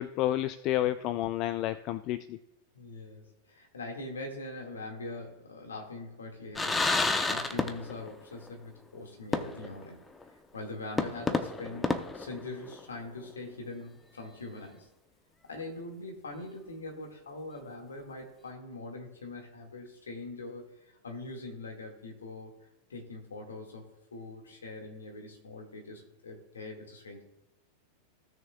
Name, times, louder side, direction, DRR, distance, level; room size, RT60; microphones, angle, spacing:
voice 1, 0.0-2.4, left 13 dB, 40° left, 14 dB, 0.3 m, -30 dB
voice 2, 2.7-10.0 10.3-14.9 15.5-22.5 22.9-27.2, left 2 dB, 70° left, 2 dB, 1.9 m, -43 dB
sound 1, 6.6-8.2 8.4-8.5 9.3-9.9 10.2-10.3 11.0-13.0, left 3 dB, 10° left, 0.7 m, -30 dB
16.5 x 6.4 x 2.3 m, 0.88 s
figure-of-eight pair, 90°, 0 cm